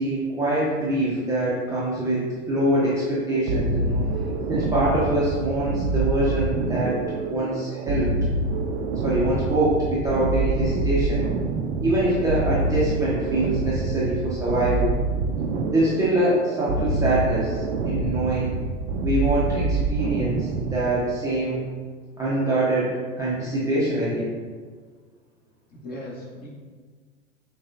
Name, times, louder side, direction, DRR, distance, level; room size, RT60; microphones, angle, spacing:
voice 1, 0.0-4.0 4.5-7.0 7.3-8.1 9.0-11.2 11.8-14.9 15.7-18.6 19.0-21.6 22.2-24.3, right 1 dB, 10° right, -9 dB, 0.7 m, -24 dB
sound 1, 3.5-21.1, right 3 dB, 45° right, 0.5 m, -26 dB
voice 2, 25.7-26.5, left 1 dB, 25° left, -5 dB, 1.4 m, -39 dB
6.1 x 2.4 x 2.7 m, 1.5 s
figure-of-eight pair, 90°, 37 cm